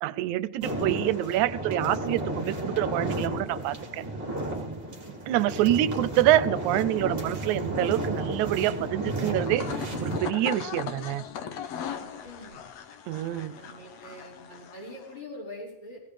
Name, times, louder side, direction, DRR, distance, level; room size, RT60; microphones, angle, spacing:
voice 1, 0.0-4.0 5.3-9.7 10.0-11.2 13.1-13.5, right 13 dB, 80° right, 15 dB, 2.0 m, -26 dB
sound 1, 0.6-10.2, right 1 dB, 20° right, 1.9 m, -32 dB
sound 2, 9.3-15.1, left 8 dB, 65° left, 2.0 m, -39 dB
voice 2, 11.9-12.6 13.5-16.0, left 1 dB, 45° left, -4 dB, 5.8 m, -44 dB
17.5 x 17.0 x 3.3 m, 0.90 s
omnidirectional pair, 3.4 m